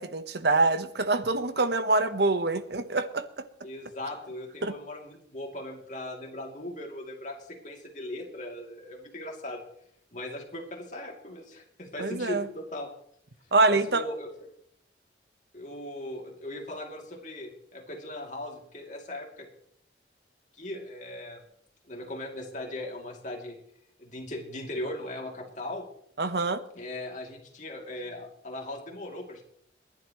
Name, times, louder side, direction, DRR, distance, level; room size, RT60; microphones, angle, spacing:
voice 1, 0.0-3.2 4.6-4.7 12.0-12.4 13.5-14.0 26.2-26.6, right 3 dB, 65° right, 11 dB, 1.1 m, -25 dB
voice 2, 3.6-9.6 10.1-12.9 13.7-14.3 15.5-19.5 20.6-21.4 21.9-23.6 24.0-25.9 26.7-29.4, left 1 dB, 45° left, 1 dB, 2.7 m, -38 dB
29.0 x 11.0 x 3.1 m, 0.70 s
head